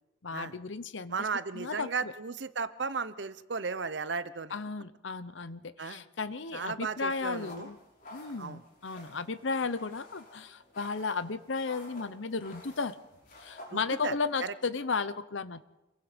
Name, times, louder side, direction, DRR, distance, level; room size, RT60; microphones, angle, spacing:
voice 1, 0.2-1.3 1.5-2.1 4.5-7.8 8.1-12.9 13.4-15.6, left 4 dB, 75° left, 14 dB, 0.9 m, -34 dB
voice 2, 1.1-4.5 5.8-6.0 6.5-7.7 8.4-8.6 13.7-14.2 14.4-14.5, right 5 dB, 65° right, 14 dB, 0.9 m, -35 dB
sound 1, 7.1-14.3, left 1 dB, 45° left, 6.5 m, -52 dB
26.0 x 22.0 x 5.2 m, 1.0 s
head